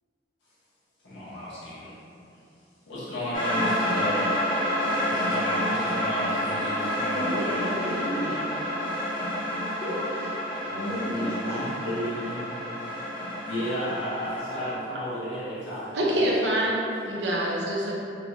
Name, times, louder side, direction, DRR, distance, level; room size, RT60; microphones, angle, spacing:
voice 1, 1.0-1.9 2.9-4.4 5.0-7.7 10.6-12.5 13.4-16.4, equal, 70° left, -11 dB, 1.1 m, -33 dB
sound 1, 3.3-14.7, equal, 45° left, 1.3 m, -29 dB
voice 2, 7.1-8.6 9.8-10.3 10.7-11.7, equal, 35° right, -14 dB, 1.0 m, -32 dB
voice 3, 15.9-17.9, right 1 dB, 70° right, -4 dB, 0.6 m, -25 dB
3.6 x 2.4 x 3.0 m, 2.7 s
head